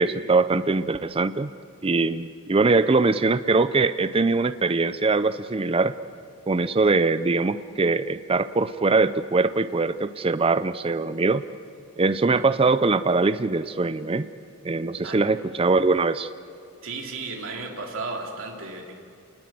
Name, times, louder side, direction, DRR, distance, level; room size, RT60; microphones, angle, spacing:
voice 1, 0.0-1.5 1.8-5.9 6.5-11.4 12.0-14.3 14.6-16.3, right 3 dB, 25° right, 13 dB, 0.5 m, -22 dB
voice 2, 16.8-19.0, right 3 dB, 60° right, 1 dB, 3.4 m, -34 dB
28.5 x 19.5 x 7.7 m, 2.4 s
head